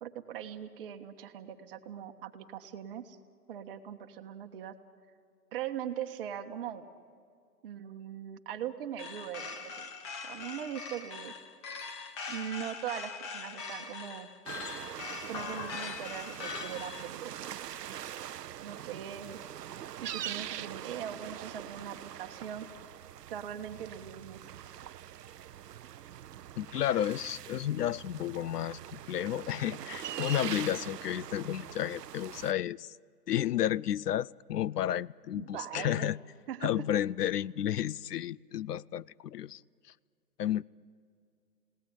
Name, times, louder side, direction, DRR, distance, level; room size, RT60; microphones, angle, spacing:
voice 1, 0.0-3.2 3.5-4.7 5.5-6.8 7.6-9.9 10.2-11.3 12.3-14.3 15.2-17.5 18.6-19.4 20.0-22.7 23.3-24.4 35.3-36.1 36.5-36.7, right 9 dB, 35° right, 1.4 m, -40 dB
sound 1, 9.0-17.1, left 5 dB, 15° left, 0.7 m, -41 dB
sound 2, 14.5-32.5, right 11 dB, 85° right, 0.6 m, -43 dB
voice 2, 26.6-32.9 33.3-36.2 36.6-39.6 40.4-40.6, left 11 dB, 75° left, 0.6 m, -32 dB
30.0 x 18.0 x 8.9 m
hypercardioid pair, 150°, 47 cm